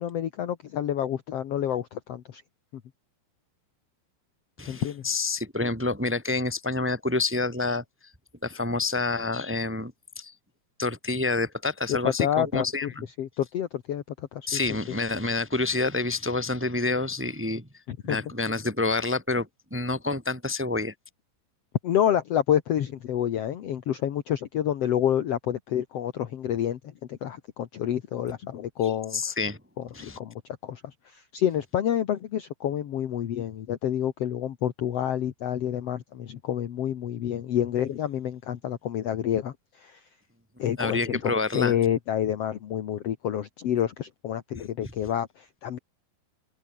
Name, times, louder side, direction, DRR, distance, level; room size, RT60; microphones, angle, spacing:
voice 1, 0.0-2.4 4.7-5.0 12.0-12.9 13.2-14.0 14.3-14.6 17.9-18.2 21.8-26.8 27.1-29.2 30.0-30.3 30.6-30.8 31.1-40.0 40.6-45.8, left 10 dB, 60° left, 1.6 m, -28 dB
voice 2, 4.6-7.8 8.4-10.3 10.8-13.1 14.5-17.7 18.0-20.9 29.1-29.6 29.9-30.2 40.8-41.7 44.5-44.6, left 3 dB, 5° right, 1.2 m, -28 dB
omnidirectional pair, 4.7 m